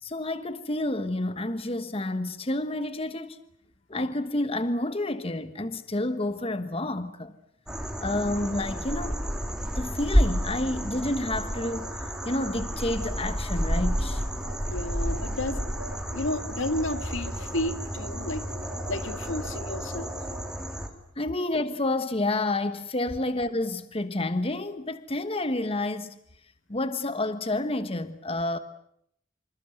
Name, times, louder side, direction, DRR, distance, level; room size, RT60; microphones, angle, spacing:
voice 1, 0.0-3.4 3.9-7.3 8.0-9.2 9.8-11.9 12.2-14.2 16.1-16.2 21.2-26.2 26.7-28.6, left 2 dB, 30° left, 1.2 m, -29 dB
sound 1, 7.7-20.9, equal, 5° right, 3.1 m, -30 dB
sound 2, 11.6-14.8 15.1-15.3 15.6-20.4, right 3 dB, 70° right, 5.9 m, -45 dB
voice 2, 14.7-15.7 16.1-18.4 18.9-20.2, left 1 dB, 80° left, 2.2 m, -32 dB
27.5 x 27.0 x 7.9 m
head